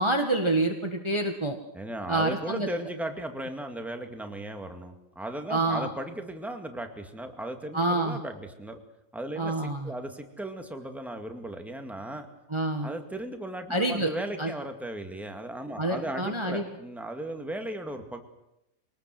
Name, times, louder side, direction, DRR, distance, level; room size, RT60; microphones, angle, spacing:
voice 1, 0.0-1.6 2.1-2.7 5.5-5.9 7.7-8.2 9.4-9.9 12.5-12.9 13.7-14.1 14.4-14.5 15.8-16.6, right 2 dB, 20° right, 3 dB, 1.7 m, -27 dB
voice 2, 1.7-8.8 9.1-9.5 9.8-12.3 12.8-18.2, right 1 dB, ahead, 5 dB, 2.1 m, -36 dB
24.0 x 19.0 x 7.8 m, 0.87 s
omnidirectional pair, 1.7 m